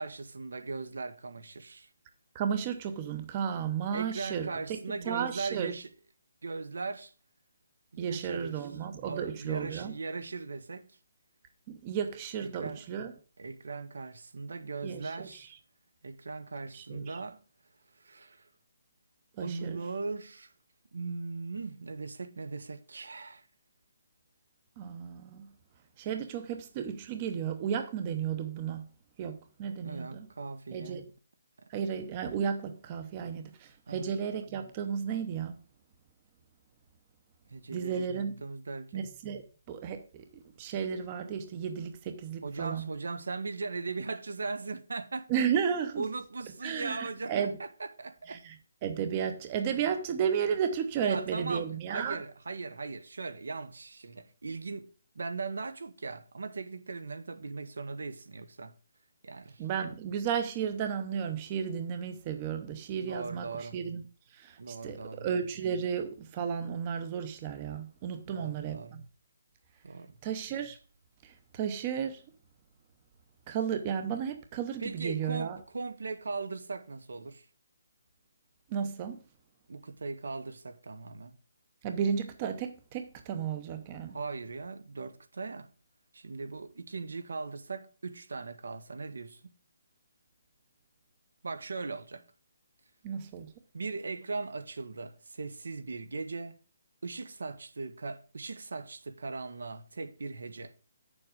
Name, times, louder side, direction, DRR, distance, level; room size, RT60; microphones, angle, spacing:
voice 1, 0.0-1.9 3.9-5.9 6.4-7.1 7.9-8.7 9.0-10.9 12.4-12.8 13.4-15.5 16.0-17.4 18.0-18.5 19.4-20.5 20.9-23.5 29.8-31.0 33.9-34.1 37.5-39.1 42.4-45.3 46.0-48.4 51.0-58.7 59.2-59.6 63.0-63.8 64.6-65.2 68.3-69.0 69.8-70.1 74.8-77.4 79.7-81.3 84.1-85.7 86.1-89.4 91.4-92.2 93.7-96.5 97.0-100.7, right 3 dB, 80° right, 1.4 m, -39 dB
voice 2, 2.3-4.8 5.0-5.7 8.0-10.0 11.7-13.1 14.8-15.3 16.7-17.2 19.4-19.8 24.8-25.5 26.0-28.9 29.2-30.3 30.7-31.0 31.7-35.6 37.7-38.3 38.9-39.4 39.7-42.9 45.3-46.0 46.6-47.6 48.3-48.6 48.8-52.2 59.6-64.0 64.3-69.0 70.2-70.8 71.2-72.2 73.5-75.6 78.7-79.2 81.8-84.2 93.0-93.5, right 7 dB, 20° right, 0.8 m, -33 dB
9.1 x 7.1 x 5.1 m
hypercardioid pair, 180°, 0 cm